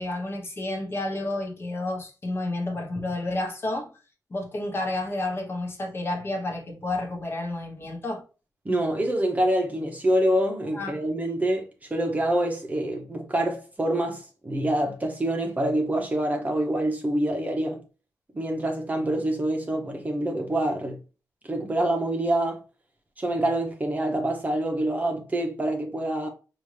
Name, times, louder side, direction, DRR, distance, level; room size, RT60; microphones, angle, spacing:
voice 1, 0.0-3.9 4.3-8.2 10.7-11.0, left 2 dB, 35° left, 1.0 m, -30 dB
voice 2, 8.6-17.8 18.3-21.0 21.5-22.6 23.2-26.3, right 1 dB, 25° right, 0.8 m, -26 dB
5.1 x 2.5 x 3.2 m
wide cardioid pair, 125°, 7 cm